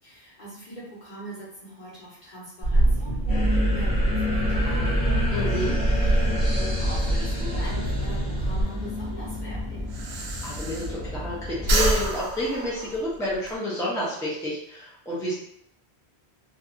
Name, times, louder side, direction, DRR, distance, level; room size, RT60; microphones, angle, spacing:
voice 1, 0.0-10.1, right 1 dB, 45° left, -7 dB, 1.2 m, -41 dB
sound 1, 2.6-8.6, right 1 dB, 75° left, 1.1 m, -25 dB
sound 2, 3.3-12.1, left 1 dB, 30° left, 1.0 m, -29 dB
voice 2, 5.3-5.7 10.4-15.3, left 1 dB, 5° left, -7 dB, 0.6 m, -29 dB
Breathing, 8.5-11.3 11.6-13.5, right 1 dB, 70° right, 0.8 m, -28 dB
2.6 x 2.6 x 2.5 m, 0.77 s
omnidirectional pair, 1.1 m